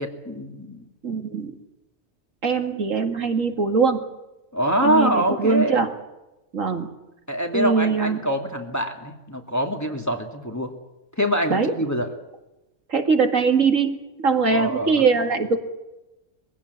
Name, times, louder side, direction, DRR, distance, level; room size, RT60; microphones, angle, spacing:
voice 1, 0.0-0.8 4.5-5.8 7.3-10.7 11.2-12.1 14.5-15.0, equal, 15° left, 2 dB, 2.6 m, -24 dB
voice 2, 1.0-1.5 2.4-4.0 4.8-5.9 6.5-6.9 7.5-8.2 11.5-11.7 12.9-15.6, right 5 dB, 80° right, 6 dB, 2.5 m, -21 dB
22.5 x 16.5 x 9.7 m, 0.99 s
omnidirectional pair, 1.3 m